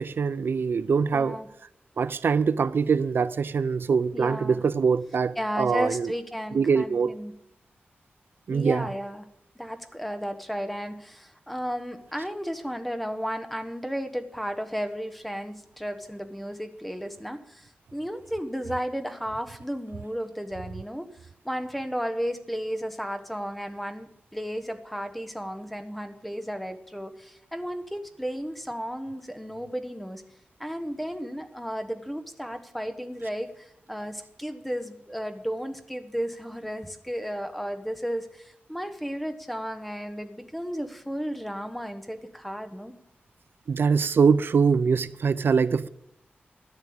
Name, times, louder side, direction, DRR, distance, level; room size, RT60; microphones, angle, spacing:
voice 1, 0.0-1.4 2.0-6.1 6.5-7.1 8.5-8.9 43.7-45.9, right 5 dB, 70° right, 0.5 m, -23 dB
voice 2, 1.1-1.5 4.1-4.6 5.4-7.3 8.5-9.3 9.5-21.1 21.4-30.2 30.6-42.9, equal, 5° left, 1.3 m, -33 dB
14.5 x 10.5 x 8.8 m
wide cardioid pair, 150°, 4 cm